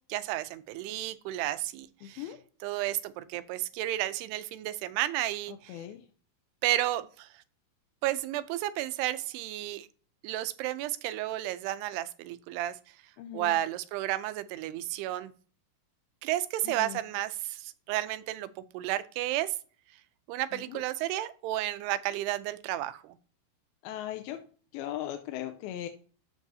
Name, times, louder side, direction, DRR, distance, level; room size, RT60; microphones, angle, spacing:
voice 1, 0.1-2.3 2.6-5.8 6.6-7.3 8.0-9.9 10.2-12.7 13.3-15.3 16.2-18.5 18.7-19.5 20.3-23.2, right 14 dB, 85° right, 14 dB, 2.7 m, -32 dB
voice 2, 2.0-2.4 5.5-6.1 13.2-13.6 16.6-17.0 20.5-20.8 23.8-24.4 24.7-25.9, left 12 dB, 80° left, 5 dB, 2.4 m, -39 dB
13.0 x 5.4 x 2.7 m, 0.40 s
omnidirectional pair, 4.6 m